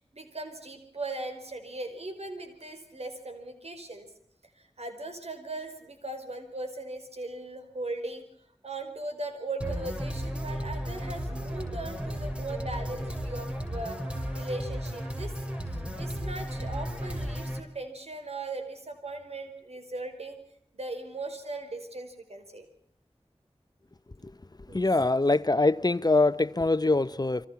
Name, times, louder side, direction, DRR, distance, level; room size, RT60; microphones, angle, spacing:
voice 1, 0.0-4.1 4.6-8.3 8.6-14.0 14.3-15.4 15.7-20.4 20.7-22.7 24.7-24.8, right 2 dB, 75° right, 5.1 m, -38 dB
sound 1, 9.6-17.6, equal, 10° right, 5.7 m, -34 dB
voice 2, 24.7-27.5, left 2 dB, 40° left, 0.9 m, -24 dB
29.0 x 24.5 x 5.9 m
wide cardioid pair, 40°, 11 cm